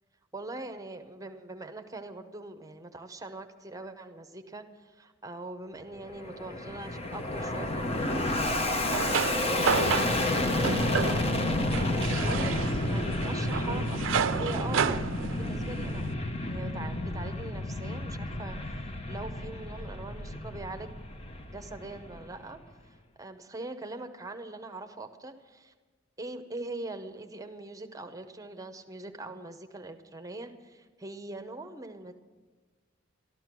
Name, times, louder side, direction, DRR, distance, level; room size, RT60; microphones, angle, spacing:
voice 1, 0.3-11.5 11.7-16.1 16.5-20.9 21.5-22.6 23.2-25.7 26.2-32.1, right 2 dB, 20° right, 7 dB, 0.8 m, -42 dB
Fixed-wing aircraft airplane, 5.9-22.6, left 2 dB, 30° left, 0.8 m, -31 dB
sound 1, 8.4-16.1, right 6 dB, 90° right, 0.5 m, -32 dB
13.5 x 13.0 x 6.0 m, 1.3 s
head